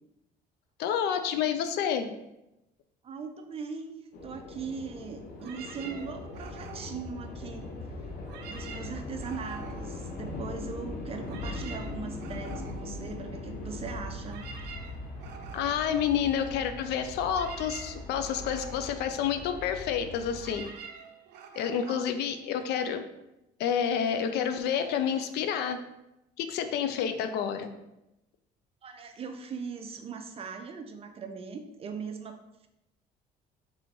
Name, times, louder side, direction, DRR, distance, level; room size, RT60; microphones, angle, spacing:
voice 1, 0.8-2.1 15.5-20.7 21.6-23.0 23.6-25.8 26.4-27.7, left 8 dB, 80° left, 9 dB, 0.4 m, -29 dB
voice 2, 3.0-4.0 4.2-7.7 8.5-14.5 21.9-22.0 28.8-32.7, right 5 dB, 35° right, 6 dB, 0.5 m, -40 dB
sound 1, 4.1-20.7, left 2 dB, 60° left, 0.7 m, -40 dB
sound 2, 5.4-7.8 8.2-10.7 11.0-22.9, right 6 dB, 85° right, 0.5 m, -48 dB
3.4 x 3.0 x 4.0 m, 0.91 s
cardioid pair, 110°, 17 cm